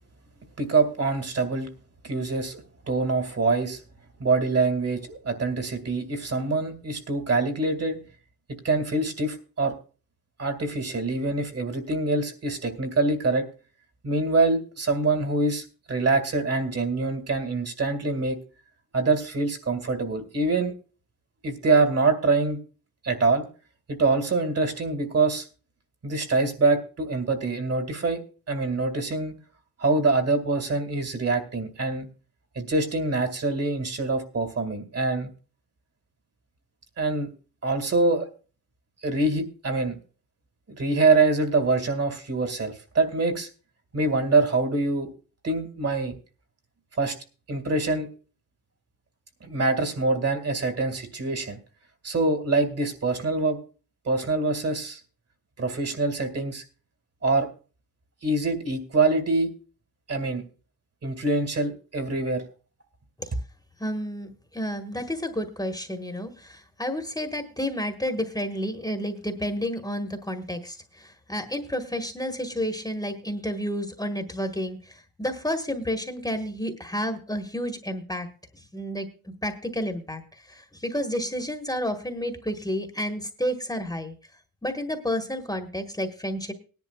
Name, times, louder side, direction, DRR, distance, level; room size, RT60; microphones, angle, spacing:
voice 1, 0.6-1.7 2.0-3.8 4.2-8.0 8.5-9.7 10.4-13.5 14.0-18.4 18.9-20.7 21.4-22.6 23.0-23.4 23.9-25.5 26.0-28.2 28.5-29.3 29.8-32.1 32.6-35.3 37.0-37.3 37.6-38.3 39.0-39.9 40.8-43.5 43.9-45.1 45.4-46.2 47.0-47.2 47.5-48.1 49.4-51.6 52.0-53.6 54.0-55.0 55.6-56.6 57.2-57.5 58.2-59.5 60.1-60.4 61.0-62.4, right 3 dB, 45° right, 7 dB, 2.3 m, -25 dB
voice 2, 63.8-78.3 78.5-84.1 84.6-86.5, equal, 10° left, 6 dB, 1.4 m, -31 dB
19.5 x 10.5 x 2.3 m, 0.37 s
wide cardioid pair, 120°, 35 cm